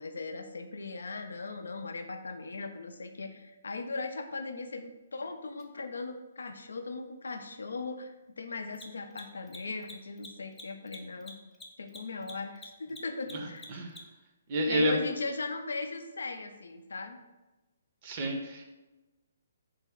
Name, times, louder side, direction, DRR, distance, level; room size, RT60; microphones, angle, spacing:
voice 1, 0.0-11.4 11.8-13.6 14.7-17.2, left 3 dB, 75° left, 6 dB, 0.4 m, -38 dB
Mechanisms, 5.6-5.7 8.6-14.3, left 2 dB, 10° left, 0.5 m, -48 dB
voice 2, 14.5-15.0 18.0-18.6, right 1 dB, 40° right, 2 dB, 0.6 m, -29 dB
3.2 x 2.1 x 3.6 m, 1.1 s
figure-of-eight pair, 135°, 0 cm